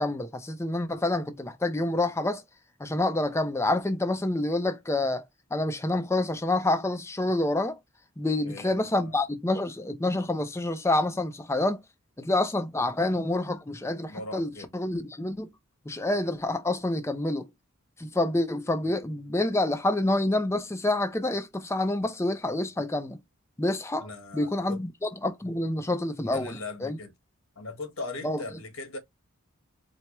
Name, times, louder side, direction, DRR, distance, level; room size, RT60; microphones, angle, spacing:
voice 1, 0.0-2.4 2.8-5.2 5.5-7.8 8.2-11.8 12.2-15.5 15.9-17.5 18.0-23.2 23.6-24.1 24.3-27.0 28.2-28.4, left 2 dB, 10° left, 0.4 m, -27 dB
voice 2, 8.4-9.2 14.1-14.7 18.8-19.0 24.0-24.8 26.2-27.1 27.5-29.0, left 3 dB, 70° left, 1.3 m, -39 dB
4.4 x 2.0 x 2.9 m
head